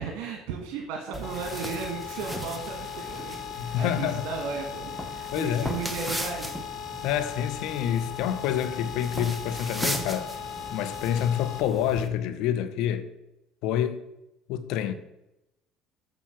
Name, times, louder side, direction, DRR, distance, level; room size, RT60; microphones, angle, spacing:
voice 1, 0.0-6.6, right 5 dB, 75° right, 1.4 m, -35 dB
sound 1, 1.1-12.1, right 1 dB, ahead, 1.1 m, -37 dB
sound 2, 1.2-11.6, left 10 dB, 45° left, 1.0 m, -39 dB
voice 2, 3.6-4.3 5.3-5.7 7.0-10.4 10.7-13.1 13.6-14.0 14.5-14.9, left 10 dB, 75° left, 0.8 m, -27 dB
7.2 x 6.9 x 5.8 m
supercardioid pair, 100°, 0 cm